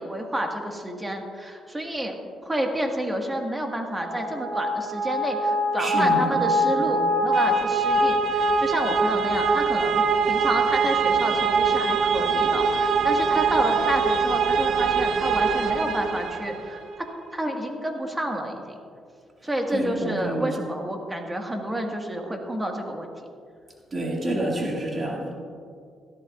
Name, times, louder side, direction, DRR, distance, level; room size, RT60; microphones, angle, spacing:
voice 1, 0.0-2.2 2.5-17.1 17.3-18.7 19.4-23.1, right 1 dB, 15° right, 2 dB, 1.7 m, -29 dB
sound 1, 4.0-16.8, right 3 dB, 70° right, 0.9 m, -23 dB
voice 2, 5.8-6.4 6.7-7.0 19.7-20.5 23.9-25.3, right 1 dB, 35° right, -1 dB, 2.1 m, -28 dB
17.0 x 12.5 x 2.5 m, 2.3 s
cardioid pair, 90°, 0 cm